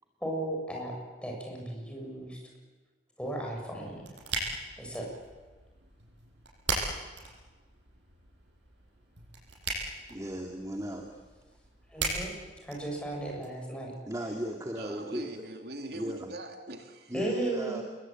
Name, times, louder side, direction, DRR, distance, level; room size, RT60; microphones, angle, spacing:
voice 1, 0.2-0.9 1.2-2.4 3.2-4.1 4.8-5.1 11.9-12.3 12.6-13.9 17.1-17.8, right 1 dB, 5° left, 0 dB, 7.2 m, -35 dB
sound 1, 3.5-13.5, right 3 dB, 90° right, 7.7 m, -39 dB
voice 2, 10.1-11.2 14.1-15.4 15.9-16.3 17.1-17.8, right 1 dB, 20° right, 3 dB, 2.2 m, -36 dB
voice 3, 14.8-17.1, right 1 dB, 65° right, 4 dB, 2.6 m, -42 dB
29.0 x 21.5 x 9.0 m, 1.3 s
head